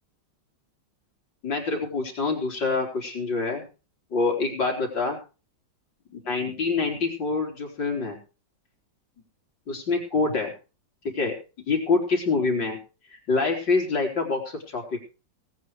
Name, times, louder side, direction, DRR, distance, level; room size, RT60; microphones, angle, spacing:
voice 1, 1.4-3.7 4.1-5.2 6.1-8.2 9.7-10.5 11.1-11.3 11.7-12.8 13.1-15.0, left 4 dB, 80° left, 1 dB, 4.3 m, -26 dB
19.0 x 8.6 x 4.7 m, 0.33 s
omnidirectional pair, 2.0 m